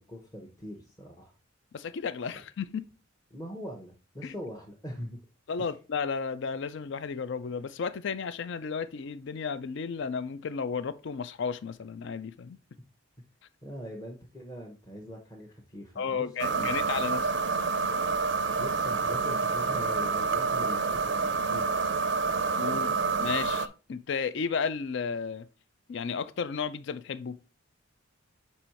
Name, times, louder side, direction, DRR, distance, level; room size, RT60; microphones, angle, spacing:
voice 1, 0.0-1.3 3.3-5.2 13.6-16.8 18.2-21.9 22.7-22.9, equal, 15° left, 0.9 m, -42 dB
voice 2, 1.7-2.8 4.2-4.3 5.5-12.6 16.0-17.5 22.6-25.5 25.9-27.4, left 5 dB, 60° left, 0.4 m, -33 dB
sound 1, 16.4-23.7, right 4 dB, 55° right, 0.4 m, -28 dB
5.4 x 4.2 x 4.4 m
head